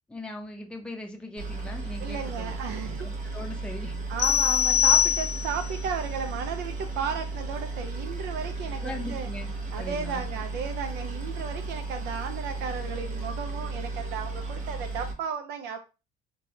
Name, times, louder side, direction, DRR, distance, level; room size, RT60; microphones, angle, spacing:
voice 1, 0.1-2.5 3.0-4.0 8.8-10.3, left 2 dB, 5° left, 2 dB, 0.5 m, -40 dB
Boat Water vehicle, 1.4-15.1, right 3 dB, 50° right, 0.9 m, -34 dB
voice 2, 2.0-3.0 4.1-9.3 9.7-15.8, right 6 dB, 80° right, 6 dB, 0.4 m, -34 dB
sound 1, 4.2-5.7, left 9 dB, 80° left, 0.5 m, -22 dB
3.2 x 2.2 x 2.6 m, 0.29 s
cardioid pair, 110°, 17 cm